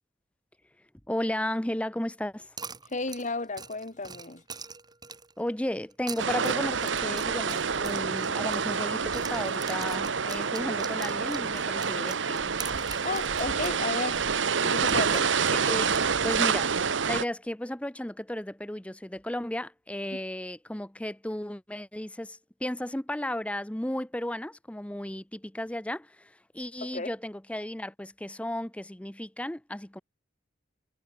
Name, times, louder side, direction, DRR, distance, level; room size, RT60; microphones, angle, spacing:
voice 1, 1.1-2.5 5.4-12.5 15.5-15.8 16.2-30.0, left 1 dB, 5° left, 0.7 m, -34 dB
sound 1, 2.6-5.4 5.9-8.9 9.1-13.8 14.1-14.2 14.9-16.5, right 5 dB, 20° right, 5.2 m, -43 dB
voice 2, 2.9-4.4 13.0-14.2 14.6-15.3 26.8-27.1, left 3 dB, 40° left, 2.1 m, -33 dB
sound 2, 6.2-17.2, right 6 dB, 70° right, 1.0 m, -28 dB
head